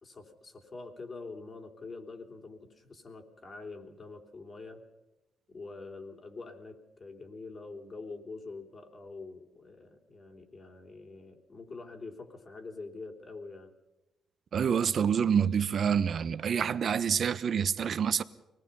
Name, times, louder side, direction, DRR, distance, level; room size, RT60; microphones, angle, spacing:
voice 1, 0.0-4.8 5.5-13.7, left 3 dB, 40° left, 3.5 m, -45 dB
voice 2, 14.5-18.2, right 7 dB, 55° right, 1.0 m, -27 dB
25.0 x 19.5 x 5.6 m
cardioid pair, 90°, 0 cm